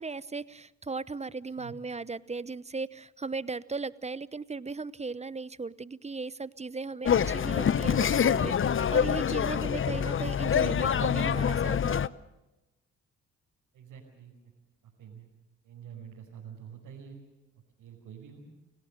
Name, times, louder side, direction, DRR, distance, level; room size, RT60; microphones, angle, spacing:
voice 1, 0.0-12.1, right 4 dB, 20° right, 18 dB, 0.9 m, -37 dB
sound 1, 7.1-12.1, left 8 dB, 40° left, 0.8 m, -26 dB
voice 2, 13.7-14.3 14.8-15.3 15.6-17.2 17.8-18.4, right 8 dB, 75° right, -2 dB, 5.2 m, -47 dB
29.5 x 18.0 x 6.7 m, 1.0 s
hypercardioid pair, 50°, 33 cm